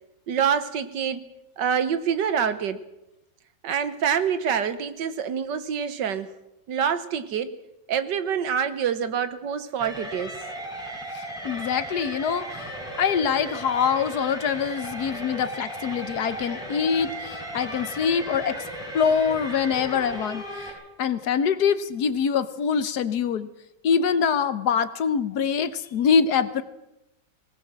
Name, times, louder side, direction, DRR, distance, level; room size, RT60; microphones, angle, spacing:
voice 1, 0.3-1.3 1.6-2.8 3.6-6.3 6.7-7.5 7.9-10.4, right 7 dB, 75° right, 13 dB, 1.8 m, -26 dB
sound 1, 9.8-20.7, right 1 dB, ahead, 4.7 m, -36 dB
voice 2, 11.1-12.7 13.0-18.6 18.9-23.5 23.8-26.6, left 6 dB, 65° left, 13 dB, 1.5 m, -24 dB
19.0 x 18.5 x 7.5 m, 0.91 s
omnidirectional pair, 1.9 m